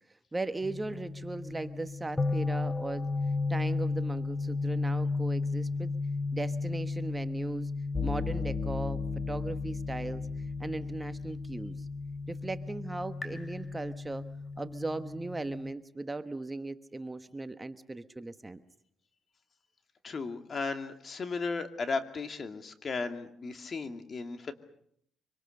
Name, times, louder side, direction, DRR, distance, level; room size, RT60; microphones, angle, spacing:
voice 1, 0.3-3.1 3.5-5.9 6.3-7.7 8.0-9.0 9.3-10.2 10.6-11.8 12.3-14.3 14.6-18.6, right 2 dB, 15° right, 10 dB, 1.1 m, -37 dB
sound 1, 0.6-15.7, left 3 dB, 15° left, 3.4 m, -34 dB
voice 2, 20.0-24.5, left 4 dB, 45° left, 7 dB, 2.5 m, -35 dB
25.0 x 25.0 x 6.7 m, 0.69 s
cardioid pair, 90°, 0 cm